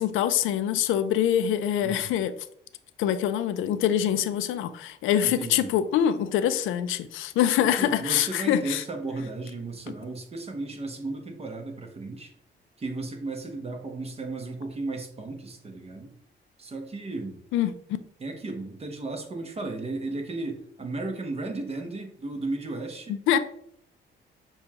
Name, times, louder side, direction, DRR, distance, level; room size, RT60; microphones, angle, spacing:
voice 1, 0.0-2.3 3.0-8.8 17.5-17.7 23.1-23.4, left 10 dB, 85° left, 12 dB, 0.4 m, -24 dB
voice 2, 5.2-5.7 7.6-12.3 12.8-16.2 16.6-17.4 18.2-23.4, right 2 dB, 30° right, 4 dB, 0.9 m, -35 dB
6.7 x 2.3 x 2.8 m, 0.67 s
cardioid pair, 90°, 20 cm